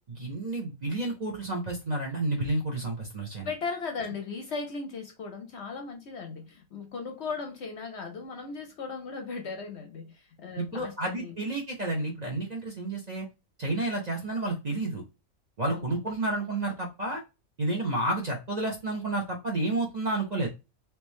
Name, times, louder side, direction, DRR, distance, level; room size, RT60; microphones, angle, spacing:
voice 1, 0.1-3.5 10.6-13.3 13.6-15.0 15.6-17.2 17.6-20.5, right 2 dB, 35° right, 0.7 m, -30 dB
voice 2, 3.4-11.4 15.7-15.9, left 4 dB, 60° left, 0.8 m, -37 dB
3.4 x 2.9 x 3.0 m
omnidirectional pair, 1.5 m